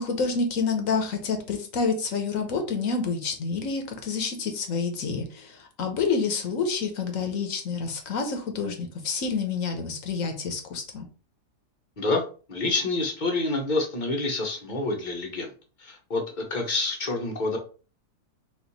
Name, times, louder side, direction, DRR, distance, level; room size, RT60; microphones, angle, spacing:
voice 1, 0.0-11.1, left 4 dB, 55° left, 5 dB, 1.2 m, -28 dB
voice 2, 12.5-15.5 15.8-17.6, left 2 dB, 35° left, 2 dB, 0.8 m, -27 dB
4.2 x 2.6 x 4.0 m, 0.37 s
omnidirectional pair, 1.8 m